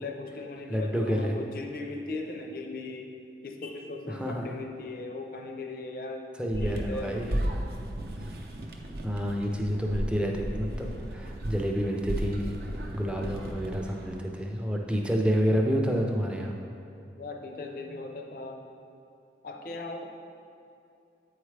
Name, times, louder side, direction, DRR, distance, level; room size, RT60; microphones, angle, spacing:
voice 1, 0.0-3.2 3.4-6.3 6.6-7.4 10.6-11.1 17.2-18.6 19.4-20.0, left 3 dB, 50° left, 2 dB, 0.5 m, -38 dB
voice 2, 0.7-1.3 4.1-4.5 6.4-7.3 8.3-8.4 9.0-12.5 12.9-16.6, equal, 5° right, 1 dB, 0.4 m, -29 dB
sound 1, 6.5-14.3, right 1 dB, 60° right, 0.6 m, -35 dB
8.0 x 4.7 x 3.2 m, 2.6 s
head